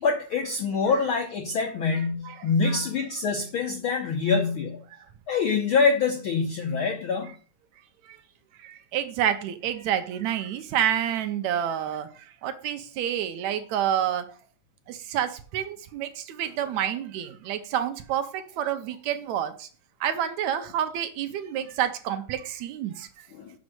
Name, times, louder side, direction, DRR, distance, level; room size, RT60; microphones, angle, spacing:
voice 1, 0.0-4.8 5.3-7.3 23.3-23.5, left 5 dB, 75° left, 4 dB, 1.2 m, -25 dB
voice 2, 2.3-2.9 4.9-5.0 8.0-8.2 8.6-14.3 14.9-19.7 20.0-23.1, right 10 dB, 75° right, 8 dB, 2.0 m, -29 dB
6.3 x 6.2 x 6.2 m, 0.40 s
omnidirectional pair, 3.5 m